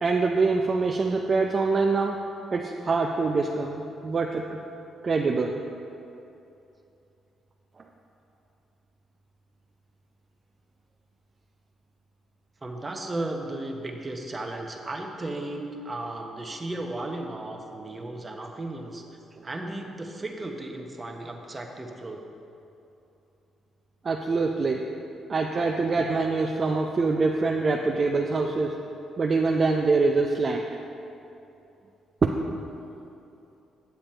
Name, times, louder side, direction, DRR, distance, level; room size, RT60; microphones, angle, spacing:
voice 1, 0.0-2.2 2.5-4.6 5.0-5.6 24.0-24.9 25.3-28.8 29.2-30.7 32.2-32.3, right 3 dB, 40° right, 1 dB, 0.5 m, -24 dB
voice 2, 12.6-19.0 19.4-22.2, right 2 dB, 25° right, 2 dB, 1.0 m, -35 dB
9.1 x 7.0 x 4.4 m, 2.8 s
cardioid pair, 90°, 0 cm